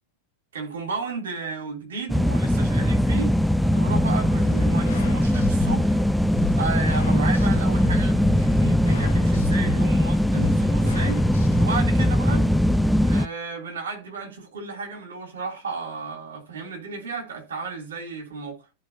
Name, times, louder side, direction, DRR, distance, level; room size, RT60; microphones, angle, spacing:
voice 1, 0.5-3.3 3.6-6.0 6.6-11.2 11.6-12.5 13.0-18.6, right 4 dB, 65° right, 3.1 m, -33 dB
sound 1, 2.1-13.3, equal, ahead, 0.3 m, -21 dB
sound 2, 3.9-11.8, left 4 dB, 70° left, 2.1 m, -35 dB
14.0 x 4.9 x 2.8 m
figure-of-eight pair, 90°, 0 cm